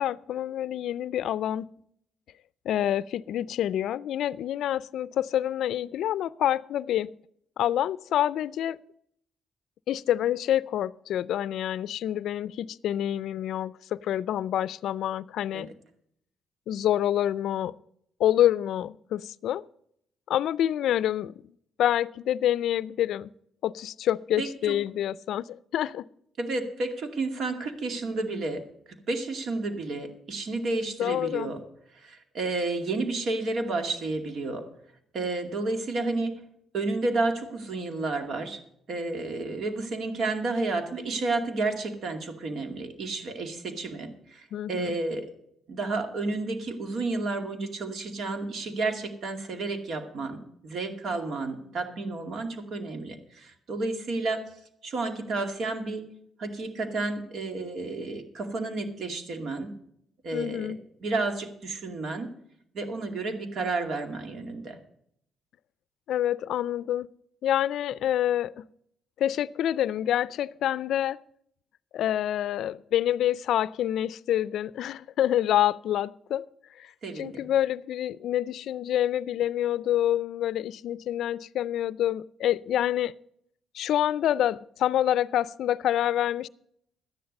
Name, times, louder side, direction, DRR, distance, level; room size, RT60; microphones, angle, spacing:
voice 1, 0.0-1.7 2.7-7.1 7.6-8.8 9.9-15.7 16.7-17.7 18.2-19.6 20.3-21.3 21.8-23.3 23.6-26.0 31.0-31.5 44.5-45.0 60.3-60.8 66.1-67.1 67.4-68.6 69.2-71.2 71.9-76.5 76.8-83.1 83.7-86.5, left 11 dB, 75° left, 20 dB, 0.4 m, -27 dB
voice 2, 24.4-24.7 26.4-28.6 29.1-31.6 31.9-34.6 35.1-36.4 36.7-38.6 38.9-45.3 45.7-54.4 54.8-56.0 56.4-59.7 60.2-62.3 62.7-64.8 77.0-77.4, right 3 dB, 65° right, 6 dB, 2.2 m, -31 dB
12.5 x 10.5 x 5.3 m, 0.71 s
cardioid pair, 90°, 0 cm